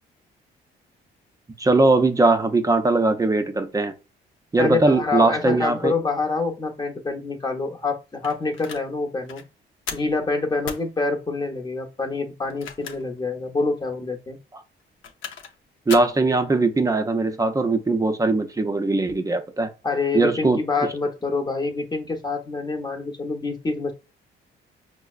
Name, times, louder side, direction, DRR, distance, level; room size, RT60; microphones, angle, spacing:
voice 1, 1.6-3.9 4.5-5.9 15.9-19.7 20.1-20.6, right 3 dB, 15° right, 0.5 m, -20 dB
voice 2, 4.6-9.4 9.9-14.4 19.8-23.9, left 3 dB, 20° left, 0.7 m, -26 dB
sound 1, 8.2-8.8 9.3-9.4 9.9-10.1 10.6-10.9 12.4-13.2 13.6-13.7 14.8-15.5 15.9-16.2, left 6 dB, 80° left, 0.6 m, -35 dB
5.4 x 2.0 x 2.4 m
cardioid pair, 90°, 20 cm